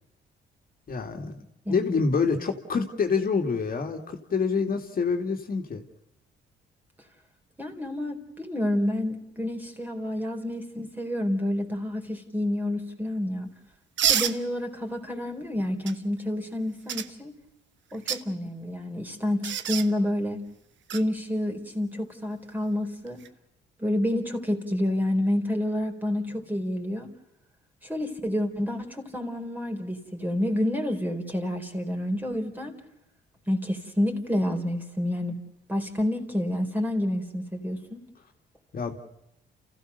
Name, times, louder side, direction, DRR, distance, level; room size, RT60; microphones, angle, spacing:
voice 1, 0.9-1.4 1.7-5.8 38.7-39.0, left 5 dB, 45° left, 3 dB, 2.5 m, -27 dB
voice 2, 1.6-2.0 7.6-13.5 14.0-17.4 17.9-20.4 20.9-23.2 23.8-27.1 27.8-32.8 33.5-35.3 35.7-38.0, left 1 dB, 10° right, 2 dB, 4.2 m, -29 dB
sound 1, 14.0-14.4 15.9-16.0 16.9-17.1 17.9-18.2 19.4-19.9 20.9-21.0 23.1-23.3, right 9 dB, 70° right, 1.2 m, -26 dB
30.0 x 15.5 x 6.8 m, 0.87 s
cardioid pair, 90°, 20 cm